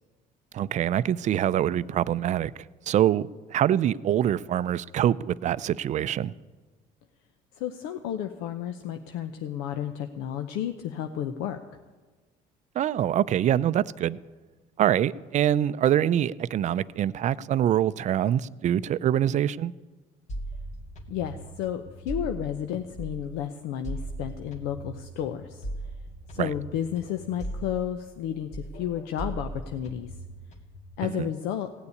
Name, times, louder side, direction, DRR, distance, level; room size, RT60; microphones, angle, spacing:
voice 1, 0.5-2.5 2.9-6.3 12.8-14.2 14.8-19.7 26.4-26.5 31.0-31.3, right 11 dB, 45° right, 0.4 m, -25 dB
voice 2, 7.6-11.6 21.1-25.7 26.3-30.1 31.0-31.7, left 10 dB, 85° left, 0.8 m, -32 dB
sound 1, 20.3-23.4 23.8-28.3 28.5-31.0, right 1 dB, 45° left, 1.9 m, -39 dB
16.5 x 7.0 x 9.7 m
cardioid pair, 100°, 16 cm